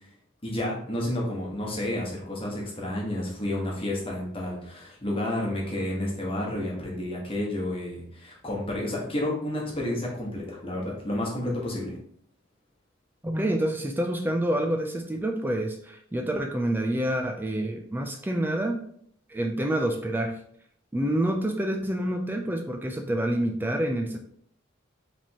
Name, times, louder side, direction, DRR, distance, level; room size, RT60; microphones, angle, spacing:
voice 1, 0.4-12.0, left 1 dB, 25° left, -3 dB, 1.3 m, -30 dB
voice 2, 13.2-18.8 19.3-20.4 20.9-24.2, right 1 dB, 10° right, 3 dB, 0.3 m, -27 dB
5.0 x 3.5 x 2.9 m, 0.65 s
head